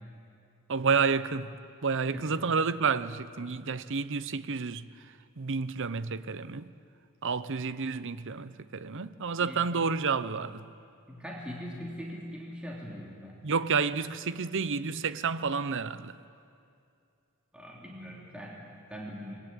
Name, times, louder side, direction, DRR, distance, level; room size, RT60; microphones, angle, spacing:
voice 1, 0.7-1.5 1.8-4.9 5.4-6.7 7.2-10.6 13.4-16.1, right 5 dB, 60° right, 0.8 m, -30 dB
voice 2, 2.1-2.4 9.4-9.6 11.1-13.4 17.5-19.4, equal, 5° right, 3.2 m, -41 dB
26.5 x 22.0 x 9.1 m
head